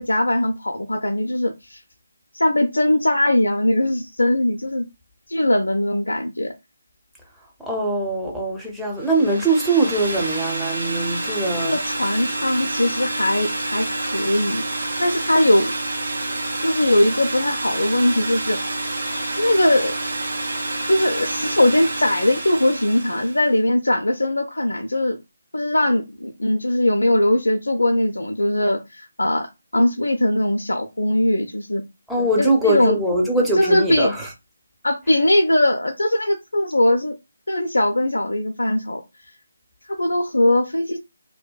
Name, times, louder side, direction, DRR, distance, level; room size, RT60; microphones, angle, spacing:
voice 1, 0.0-1.8 2.3-4.9 5.3-6.5 11.6-15.7 16.6-18.6 19.4-19.9 20.9-25.2 25.5-29.5 29.7-31.8 32.4-33.0 33.6-34.1 34.8-37.1 37.5-39.0 39.9-41.0, left 1 dB, 75° left, 0.4 m, -20 dB
voice 2, 7.6-11.8 32.1-34.3, right 2 dB, ahead, 0.5 m, -22 dB
sound 1, 9.0-23.5, right 2 dB, 65° right, 1.3 m, -28 dB
2.7 x 2.1 x 2.3 m
figure-of-eight pair, 150°, 0 cm